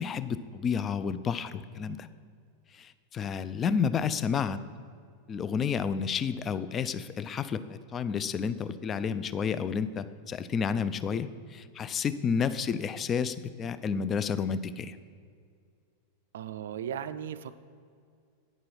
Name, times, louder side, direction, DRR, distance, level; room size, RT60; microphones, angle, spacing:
voice 1, 0.0-2.1 2.7-4.6 5.3-15.0, left 6 dB, 25° left, 13 dB, 0.3 m, -31 dB
voice 2, 16.3-17.6, right 9 dB, 60° right, 13 dB, 0.3 m, -37 dB
9.0 x 6.1 x 4.5 m, 2.3 s
figure-of-eight pair, 90°, 0 cm